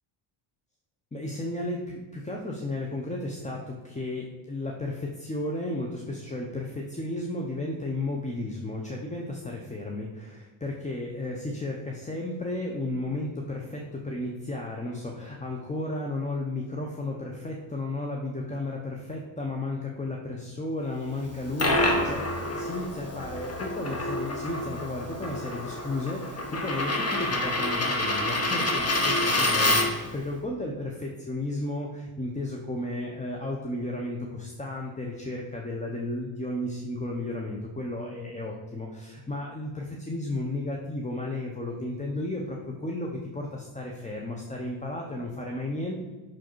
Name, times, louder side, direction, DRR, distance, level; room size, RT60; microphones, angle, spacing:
voice 1, 1.1-45.9, left 2 dB, 15° left, 0 dB, 0.7 m, -33 dB
Coin (dropping), 21.2-30.1, left 1 dB, 30° left, 1.1 m, -27 dB
6.0 x 4.8 x 4.5 m, 1.3 s
cardioid pair, 105°, 47 cm